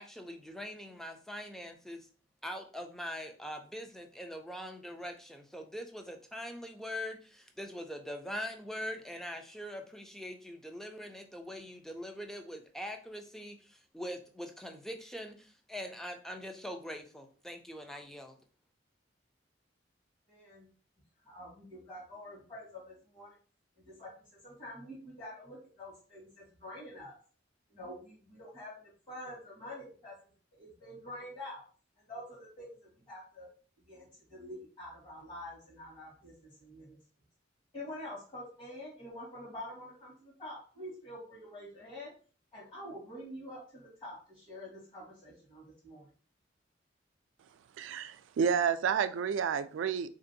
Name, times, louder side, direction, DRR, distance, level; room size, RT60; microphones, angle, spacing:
voice 1, 0.0-2.1 2.4-18.4, equal, ahead, 5 dB, 0.3 m, -42 dB
voice 2, 20.3-20.7 21.2-23.4 23.8-24.1 24.4-27.1 27.7-30.1 30.5-31.6 32.1-32.8 33.1-33.5 33.9-37.0 37.7-42.1 42.5-46.1, left 1 dB, 25° left, -8 dB, 1.2 m, -47 dB
voice 3, 47.8-50.1, right 7 dB, 90° right, 12 dB, 0.3 m, -30 dB
3.6 x 2.5 x 2.6 m, 0.40 s
head